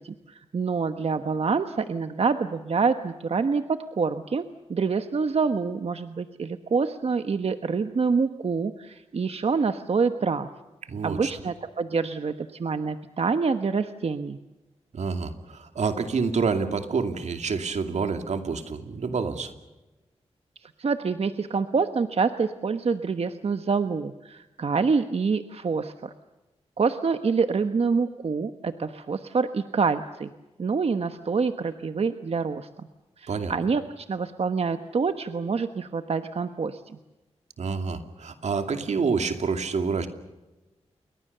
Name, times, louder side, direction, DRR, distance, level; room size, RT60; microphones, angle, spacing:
voice 1, 0.0-4.4 4.7-10.5 11.0-14.4 20.6-26.1 26.8-30.3 30.6-32.9 33.2-36.8, right 5 dB, 60° right, 9 dB, 1.2 m, -26 dB
voice 2, 10.9-11.3 14.9-19.5 33.3-33.5 37.6-40.1, right 5 dB, 85° right, 7 dB, 2.5 m, -28 dB
29.0 x 23.0 x 6.8 m, 1.1 s
wide cardioid pair, 80°, 12 cm